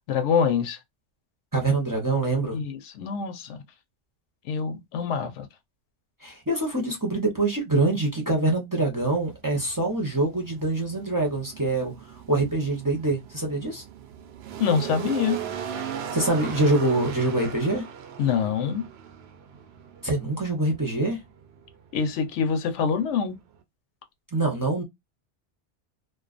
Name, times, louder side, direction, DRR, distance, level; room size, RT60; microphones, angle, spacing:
voice 1, 0.1-0.8 2.5-3.6 4.5-5.5 14.6-15.4 18.2-18.8 21.9-23.4, left 6 dB, 85° left, 0.9 m, -25 dB
voice 2, 1.5-2.6 6.2-13.8 16.1-17.9 20.0-21.2 24.3-24.8, right 2 dB, 20° right, 0.6 m, -25 dB
sound 1, 9.2-23.6, right 8 dB, 70° right, 0.8 m, -39 dB
2.4 x 2.3 x 2.4 m
omnidirectional pair, 1.2 m